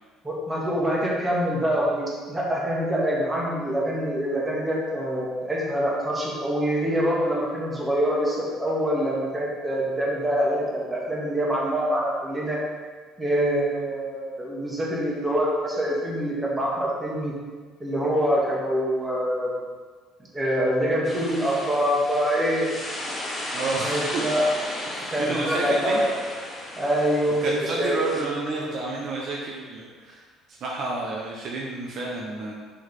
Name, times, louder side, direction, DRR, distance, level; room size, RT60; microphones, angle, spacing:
voice 1, 0.2-12.6 13.2-17.3 17.8-19.5 20.3-22.7 23.8-24.4 25.1-26.1 26.8-28.0, equal, 15° right, -4 dB, 2.0 m, -25 dB
sound 1, 21.0-28.2, left 1 dB, 20° left, 1.8 m, -35 dB
voice 2, 23.5-24.2 24.8-26.0 27.4-30.2 30.6-32.5, right 3 dB, 55° right, -2 dB, 1.1 m, -30 dB
6.3 x 6.2 x 3.7 m, 1.5 s
cardioid pair, 105°, 0 cm